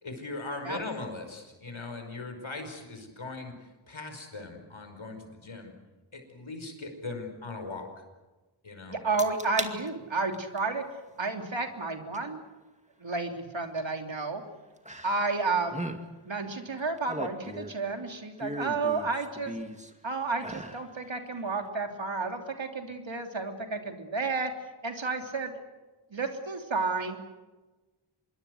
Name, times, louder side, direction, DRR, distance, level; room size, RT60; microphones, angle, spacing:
voice 1, 0.0-3.5 3.9-5.7 6.1-8.0 8.6-9.0, left 3 dB, 75° left, 5 dB, 5.2 m, -39 dB
voice 2, 8.9-10.8 11.2-12.4 13.0-14.4 15.0-15.8 16.2-19.5 20.0-24.5 24.8-25.5 26.1-27.2, right 3 dB, 70° right, 4 dB, 3.2 m, -31 dB
sound 1, 9.2-9.7 10.2-10.6 12.1-12.2 14.9-15.4 15.7-16.0 16.8-17.9 18.4-19.9 20.4-20.9 21.3-21.4, right 1 dB, 15° right, 2.1 m, -37 dB
26.0 x 22.0 x 7.9 m, 1.2 s
wide cardioid pair, 55°, 48 cm